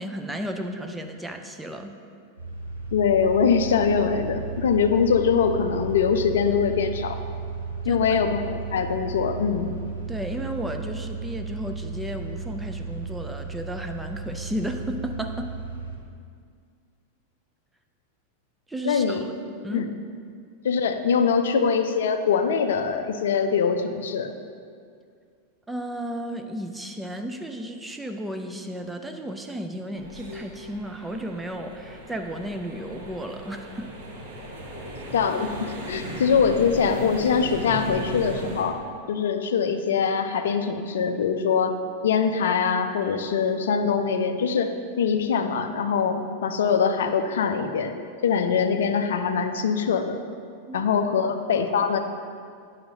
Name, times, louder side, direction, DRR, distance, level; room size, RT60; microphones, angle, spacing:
voice 1, 0.0-1.9 7.8-8.2 10.1-15.5 18.7-19.9 25.7-33.9 50.7-50.8, equal, 5° right, 5 dB, 0.5 m, -33 dB
sound 1, 2.4-16.0, right 4 dB, 90° right, 1.1 m, -34 dB
voice 2, 2.9-7.2 7.9-9.7 18.8-19.2 19.7-19.9 20.6-24.3 35.1-38.8 39.1-41.7 42.0-44.7 45.0-47.9 48.2-50.2 50.7-52.0, left 6 dB, 60° left, 7 dB, 0.4 m, -23 dB
sound 2, 29.9-38.6, right 1 dB, 55° right, 1.5 m, -37 dB
10.0 x 5.6 x 2.7 m, 2.2 s
figure-of-eight pair, 90°, 0 cm